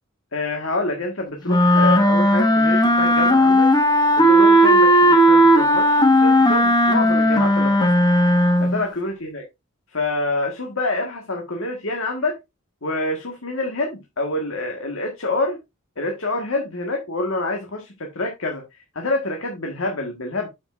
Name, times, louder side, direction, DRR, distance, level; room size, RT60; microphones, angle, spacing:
voice 1, 0.3-3.7 4.2-7.9 8.6-9.4 9.9-12.4 12.8-15.6 16.0-18.6 18.9-20.5, left 2 dB, 65° left, 2 dB, 1.6 m, -27 dB
sound 1, 1.5-8.8, equal, 20° left, 1.3 m, -15 dB
8.8 x 7.3 x 2.5 m, 0.22 s
head